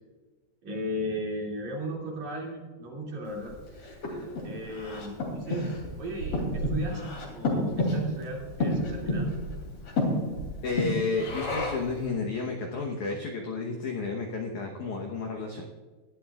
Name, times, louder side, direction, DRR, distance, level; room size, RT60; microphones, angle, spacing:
voice 1, 0.6-3.6 4.4-5.7 6.0-9.4, equal, 45° right, -2 dB, 3.6 m, -36 dB
Breathing, 3.5-12.0, left 1 dB, 40° left, 3.4 m, -31 dB
voice 2, 10.6-15.6, left 4 dB, 75° left, 1 dB, 1.8 m, -31 dB
19.5 x 11.5 x 2.4 m, 1.4 s
omnidirectional pair, 5.0 m